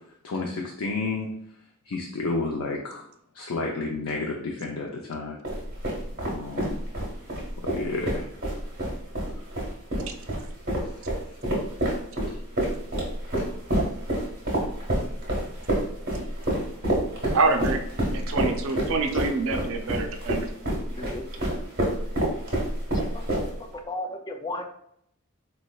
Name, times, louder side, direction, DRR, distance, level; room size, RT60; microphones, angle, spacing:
voice 1, 0.2-1.3 1.9-3.0 3.3-5.4 6.2-6.8 7.6-8.3 10.9-11.1, left 3 dB, 85° left, 0 dB, 0.5 m, -31 dB
sound 1, 5.4-23.7, right 1 dB, 45° right, 1.3 m, -28 dB
voice 2, 17.3-17.8 18.1-20.5, right 3 dB, 65° right, 6 dB, 0.4 m, -26 dB
voice 3, 23.1-24.7, left 2 dB, 20° left, 4 dB, 0.3 m, -35 dB
4.1 x 3.1 x 2.3 m, 0.71 s
head